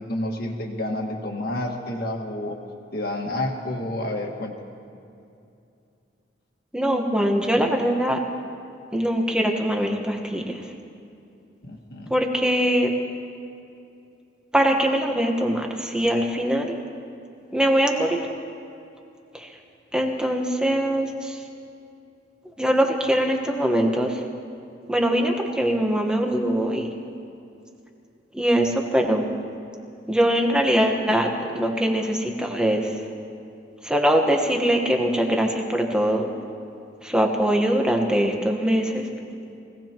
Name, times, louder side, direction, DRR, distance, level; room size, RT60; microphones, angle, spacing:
voice 1, 0.0-2.6 2.9-4.5 11.6-12.1, left 1 dB, 55° left, 1 dB, 1.7 m, -29 dB
voice 2, 6.7-8.2 8.9-10.6 12.1-12.9 14.5-16.7 17.5-18.2 19.3-19.5 19.9-21.4 22.6-24.2 24.9-26.9 28.3-29.3 30.1-31.3 31.5-32.9 33.8-36.3 37.0-39.1, equal, 5° right, 2 dB, 1.2 m, -22 dB
24.0 x 17.5 x 3.0 m, 2.6 s
head